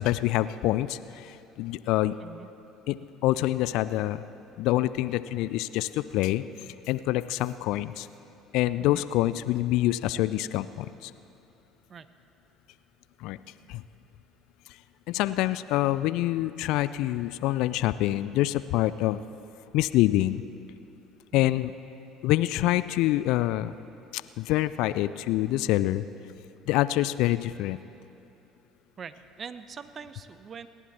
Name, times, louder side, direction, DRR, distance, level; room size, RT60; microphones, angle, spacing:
voice 1, 0.0-2.1 2.9-4.2 4.6-6.4 6.9-8.1 8.5-11.1 13.2-13.4 13.7-13.8 15.1-19.2 19.7-20.4 21.3-21.7 22.2-23.7 24.1-26.0 26.7-27.8, left 15 dB, 60° left, 15 dB, 0.4 m, -26 dB
voice 2, 29.0-30.7, right 6 dB, 40° right, 13 dB, 0.8 m, -43 dB
28.5 x 11.0 x 4.3 m, 2.8 s
figure-of-eight pair, 55°, 0 cm